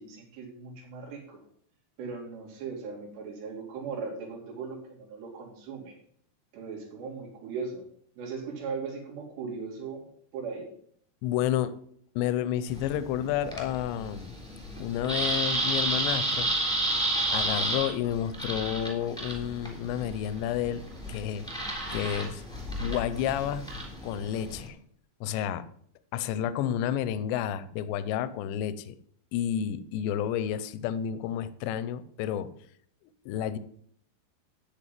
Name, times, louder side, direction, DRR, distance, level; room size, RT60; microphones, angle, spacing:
voice 1, 0.0-1.4 2.0-5.9 6.5-7.9 8.2-10.0 10.3-10.7, right 5 dB, 70° right, -2 dB, 5.1 m, -38 dB
voice 2, 11.2-11.8 12.2-14.3 14.8-16.5 17.3-20.8 21.1-22.4 22.8-23.6 24.0-24.8 25.2-25.7 26.1-29.0 29.3-32.5 33.3-33.6, left 10 dB, 80° left, 14 dB, 2.9 m, -30 dB
sound 1, 12.7-24.7, right 2 dB, ahead, 2.4 m, -32 dB
12.5 x 5.6 x 9.3 m, 0.64 s
omnidirectional pair, 5.3 m